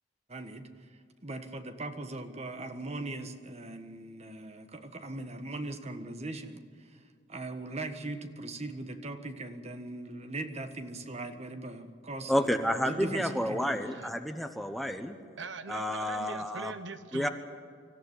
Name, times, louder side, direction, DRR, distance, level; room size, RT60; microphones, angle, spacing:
voice 1, 0.3-0.7 1.2-6.6 7.3-13.8, right 2 dB, 35° right, 8 dB, 1.5 m, -39 dB
voice 2, 12.3-15.2 15.7-16.7 17.1-17.3, equal, ahead, 6 dB, 1.1 m, -30 dB
voice 3, 15.4-17.3, right 4 dB, 70° right, 11 dB, 1.1 m, -41 dB
25.5 x 14.0 x 9.7 m, 2.1 s
head